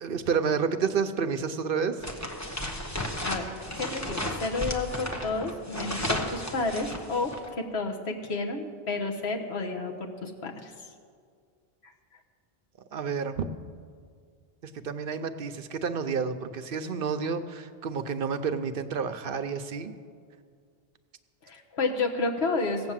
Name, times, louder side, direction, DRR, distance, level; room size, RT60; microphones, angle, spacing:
voice 1, 0.0-2.0 12.9-13.4 14.6-19.9, right 6 dB, 65° right, 10 dB, 0.8 m, -30 dB
sound 1, 2.0-7.5, left 1 dB, 15° left, 1.2 m, -34 dB
voice 2, 3.8-10.7 21.4-22.9, left 3 dB, 80° left, 3 dB, 1.6 m, -31 dB
17.0 x 7.8 x 7.4 m, 2.1 s
omnidirectional pair, 1.1 m